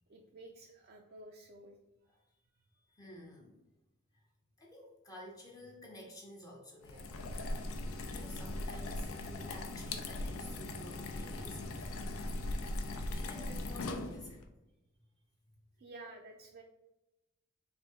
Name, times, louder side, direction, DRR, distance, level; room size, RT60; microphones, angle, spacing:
voice 1, 0.1-1.8 15.8-16.6, right 2 dB, 50° right, 1 dB, 0.4 m, -52 dB
voice 2, 2.9-3.6 4.1-4.3 4.6-7.1 8.1-12.6 13.1-14.5, left 1 dB, 20° left, -1 dB, 0.5 m, -52 dB
sound 1, 6.8-14.4, left 2 dB, 90° left, 0.5 m, -39 dB
3.4 x 2.6 x 4.3 m, 0.95 s
head